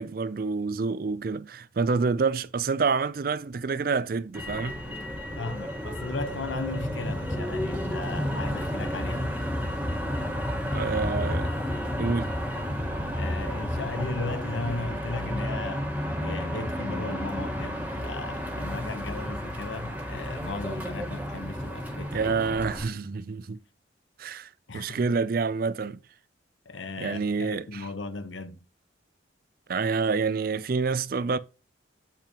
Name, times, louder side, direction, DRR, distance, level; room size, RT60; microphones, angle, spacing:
voice 1, 0.0-4.8 10.7-11.5 12.0-12.3 22.1-23.6 24.2-26.0 27.0-27.9 29.7-31.4, right 4 dB, 50° right, 0.4 m, -28 dB
Motor vehicle (road), 4.3-22.8, equal, 10° right, 1.4 m, -31 dB
voice 2, 5.4-9.3 13.2-15.9 16.2-22.6 24.7-25.0 26.7-28.6, left 3 dB, 80° left, 1.0 m, -36 dB
8.6 x 5.6 x 2.9 m
head